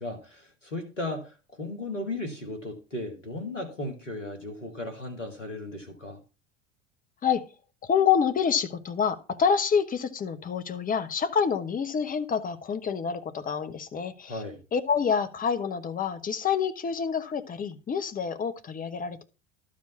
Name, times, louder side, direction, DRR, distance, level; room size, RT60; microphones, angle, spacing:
voice 1, 0.0-6.2 14.3-14.6, left 2 dB, 85° left, 1.8 m, -36 dB
voice 2, 7.8-14.4 14.7-19.2, left 7 dB, 25° left, 1.1 m, -27 dB
12.0 x 5.1 x 5.9 m
figure-of-eight pair, 75°, 36 cm